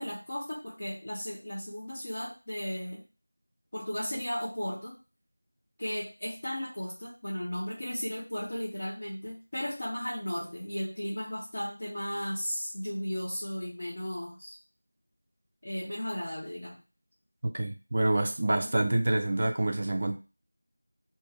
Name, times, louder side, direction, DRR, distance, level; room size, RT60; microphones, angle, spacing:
voice 1, 0.0-3.1 3.7-5.0 5.8-14.6 15.6-16.8 18.5-18.7, equal, 40° left, 0.7 m, -35 dB
voice 2, 17.4-20.2, right 2 dB, 35° right, 0.3 m, -27 dB
2.4 x 2.1 x 3.4 m
figure-of-eight pair, 175°, 0 cm